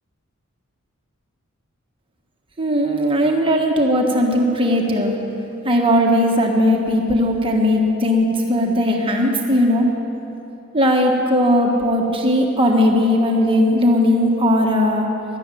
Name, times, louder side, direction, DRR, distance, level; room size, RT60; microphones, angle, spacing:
voice 1, 2.6-5.1 5.6-9.9 10.7-15.1, left 1 dB, 25° right, 1 dB, 1.5 m, -18 dB
12.5 x 11.5 x 9.2 m, 2.9 s
head